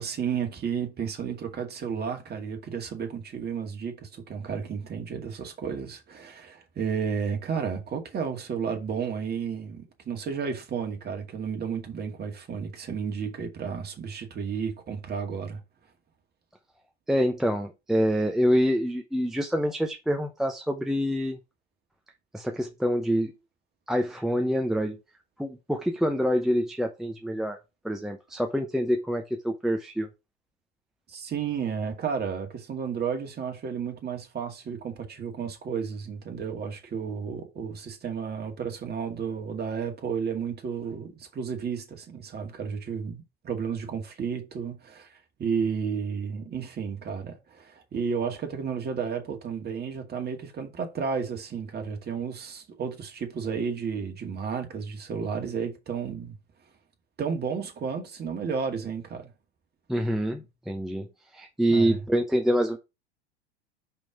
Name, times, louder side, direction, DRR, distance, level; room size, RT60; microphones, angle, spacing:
voice 1, 0.0-15.6 31.1-45.1 45.4-56.3 57.2-59.3 61.7-62.0, right 6 dB, 30° right, 2.1 m, -32 dB
voice 2, 17.1-21.4 22.3-23.3 23.9-25.0 25.4-27.6 27.8-30.1 59.9-61.1 61.3-62.8, equal, ahead, 0.8 m, -26 dB
5.6 x 5.2 x 4.8 m
figure-of-eight pair, 80°, 34 cm